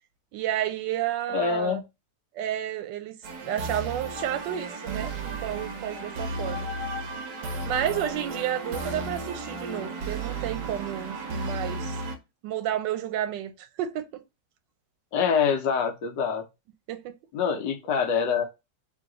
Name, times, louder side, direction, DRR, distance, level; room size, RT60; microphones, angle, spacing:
voice 1, 0.3-1.8 2.3-3.1 3.4-6.7 7.6-12.0 12.4-14.1 16.9-17.1, right 11 dB, 90° right, 1.3 m, -31 dB
voice 2, 1.3-1.8 15.1-16.4 17.3-18.4, left 6 dB, 90° left, 1.5 m, -25 dB
sound 1, 3.2-12.2, right 3 dB, 70° right, 1.4 m, -34 dB
3.8 x 2.8 x 3.8 m
omnidirectional pair, 1.9 m